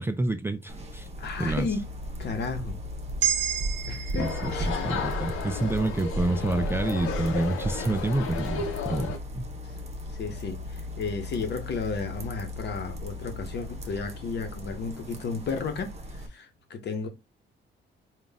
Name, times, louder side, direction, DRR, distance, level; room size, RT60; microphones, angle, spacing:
voice 1, 0.0-1.1 1.4-1.7 4.2-9.5, right 2 dB, 10° right, 0.4 m, -28 dB
sound 1, 0.7-16.3, equal, 30° right, 0.9 m, -37 dB
voice 2, 1.2-1.9 2.2-2.8 3.9-4.7 10.1-17.1, left 4 dB, 60° left, 1.0 m, -33 dB
sound 2, 3.2-7.5, right 10 dB, 65° right, 0.6 m, -33 dB
sound 3, 4.2-9.2, left 5 dB, 85° left, 0.9 m, -33 dB
3.9 x 2.4 x 3.5 m
cardioid pair, 90°, 20 cm